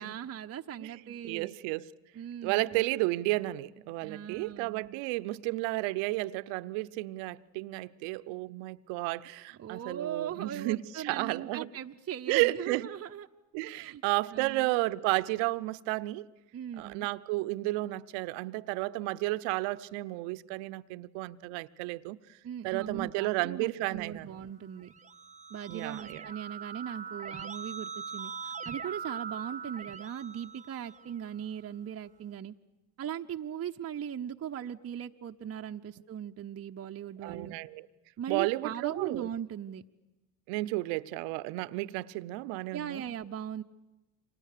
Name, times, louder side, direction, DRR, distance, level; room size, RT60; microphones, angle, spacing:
voice 1, 0.0-1.6 2.1-2.9 4.0-5.0 9.6-13.3 13.6-14.0 14.3-14.7 16.5-17.1 22.4-24.9 25.5-32.5 33.0-37.5 38.2-39.8 42.7-43.6, right 9 dB, 30° right, 0.8 m, -39 dB
voice 2, 1.2-1.8 2.4-11.7 12.3-12.9 13.5-16.3 16.8-22.2 22.6-24.4 25.7-26.3 37.2-37.9 38.3-39.3 40.5-43.0, right 20 dB, 65° right, 0.9 m, -32 dB
Keyboard (musical), 24.7-31.3, right 6 dB, 15° right, 1.3 m, -42 dB
29.5 x 25.5 x 6.7 m
hypercardioid pair, 70°, 47 cm